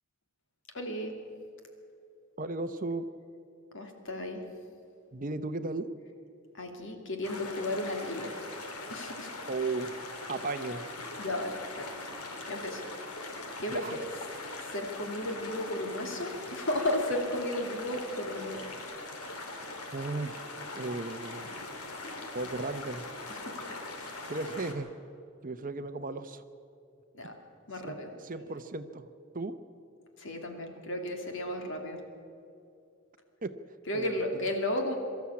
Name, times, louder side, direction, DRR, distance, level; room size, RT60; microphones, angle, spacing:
voice 1, 0.7-1.1 3.7-4.4 6.5-8.3 8.9-9.3 11.2-11.9 12.5-12.8 13.6-13.8 14.7-18.6 23.3-23.6 24.0-24.2 27.1-27.3 27.7-28.1 30.2-32.0 33.9-35.0, left 1 dB, 60° left, 3 dB, 2.7 m, -34 dB
voice 2, 2.4-3.1 5.1-5.9 9.5-10.0 10.3-10.8 13.7-14.0 19.9-20.4 20.8-21.5 22.3-23.1 24.3-24.9 25.4-26.4 27.8-29.1 29.3-29.5 33.4-33.5 33.9-34.5, right 3 dB, 40° right, 10 dB, 0.8 m, -35 dB
sound 1, 7.2-24.7, left 2 dB, 90° left, 2.7 m, -41 dB
23.5 x 13.0 x 8.6 m, 2.5 s
head